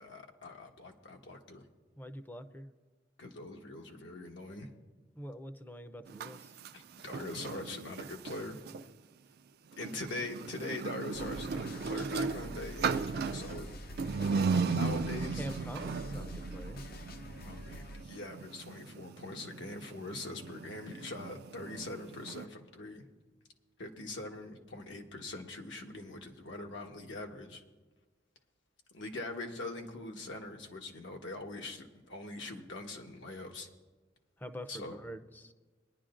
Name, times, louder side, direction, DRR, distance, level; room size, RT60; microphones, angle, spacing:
voice 1, 0.0-1.6 3.2-4.7 6.7-8.6 9.8-13.7 14.8-15.5 17.4-23.0 23.8-27.6 28.9-33.7 34.7-35.0, left 2 dB, 80° left, 2 dB, 1.3 m, -43 dB
voice 2, 2.0-2.7 5.2-6.6 14.2-15.0 15.4-16.8 34.4-35.5, equal, 10° left, 9 dB, 0.5 m, -44 dB
sound 1, 6.1-8.9 9.7-22.5, right 5 dB, 55° right, 0.4 m, -37 dB
sound 2, 11.1-18.0, equal, 55° left, 0.6 m, -46 dB
22.5 x 10.5 x 2.5 m, 1.3 s
head